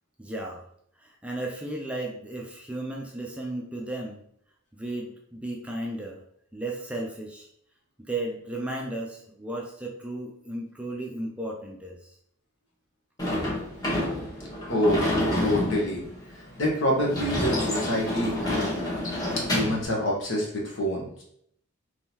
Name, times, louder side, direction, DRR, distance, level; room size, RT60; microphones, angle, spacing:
voice 1, 0.2-0.6 1.0-4.2 4.7-6.2 6.5-7.5 8.1-12.2, right 1 dB, 5° right, -1 dB, 0.4 m, -34 dB
Sliding door / Slam, 13.2-19.8, left 1 dB, 20° left, 1.1 m, -28 dB
voice 2, 14.7-15.0 15.4-16.0 16.6-18.7 19.5-21.2, equal, 65° left, -2 dB, 1.1 m, -26 dB
3.7 x 3.0 x 2.8 m, 0.68 s
head